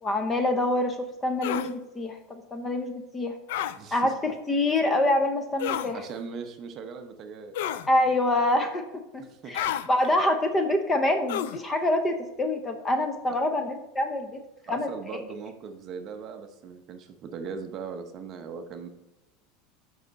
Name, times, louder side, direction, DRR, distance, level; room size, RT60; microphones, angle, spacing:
voice 1, 0.0-3.4 3.9-6.0 7.9-14.4 14.7-14.9, left 1 dB, 15° left, 6 dB, 0.6 m, -26 dB
sound 1, 1.4-1.7 3.5-3.8 5.6-5.9 7.5-7.9 9.5-9.9 11.3-11.6, left 11 dB, 75° left, 0.4 m, -30 dB
voice 2, 3.8-4.1 5.9-7.6 9.2-9.5 14.7-18.9, right 5 dB, 30° right, 6 dB, 0.7 m, -39 dB
7.6 x 5.5 x 4.0 m, 1.0 s
supercardioid pair, 160°, 0 cm